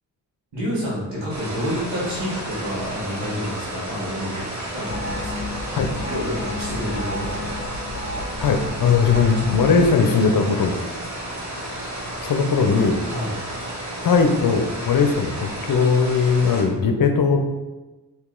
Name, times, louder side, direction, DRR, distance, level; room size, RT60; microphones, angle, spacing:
voice 1, 0.5-4.4 4.7-5.5 6.1-7.5 13.1-13.4, equal, 85° right, -5 dB, 1.4 m, -29 dB
sound 1, 1.3-16.6, right 1 dB, 40° right, 1.1 m, -32 dB
sound 2, 4.8-9.9, left 2 dB, 30° left, 1.2 m, -32 dB
voice 2, 8.4-10.8 12.2-13.0 14.0-17.4, left 5 dB, 55° left, 5 dB, 0.6 m, -19 dB
2.9 x 2.8 x 3.7 m, 1.1 s
supercardioid pair, 50°, 42 cm